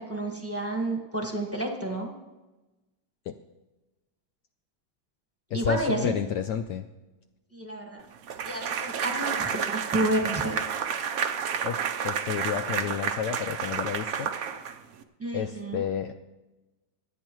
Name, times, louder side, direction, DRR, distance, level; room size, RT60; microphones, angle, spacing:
voice 1, 0.0-2.1 5.5-6.1 7.5-8.0 8.4-10.6 15.2-15.8, right 1 dB, 10° right, 2 dB, 1.3 m, -30 dB
voice 2, 5.5-6.9 11.6-14.3 15.3-16.1, left 8 dB, 75° left, 8 dB, 1.0 m, -31 dB
sound 1, 8.3-15.0, right 7 dB, 60° right, 1.0 m, -30 dB
25.5 x 8.6 x 3.1 m, 1.1 s
omnidirectional pair, 2.2 m